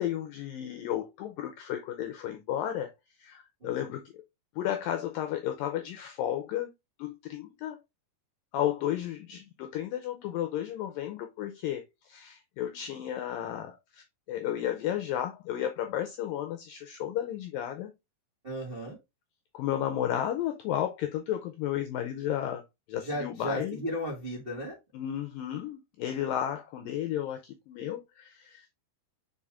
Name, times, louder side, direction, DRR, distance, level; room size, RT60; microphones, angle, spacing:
voice 1, 0.0-2.9 3.2-4.2 4.6-6.7 7.0-7.8 8.5-17.9 19.5-23.8 24.9-28.7, left 11 dB, 80° left, 2.1 m, -33 dB
voice 2, 3.6-4.0 18.4-19.0 23.0-24.7, equal, 70° right, 0.5 m, -35 dB
5.5 x 5.0 x 3.5 m
omnidirectional pair, 4.7 m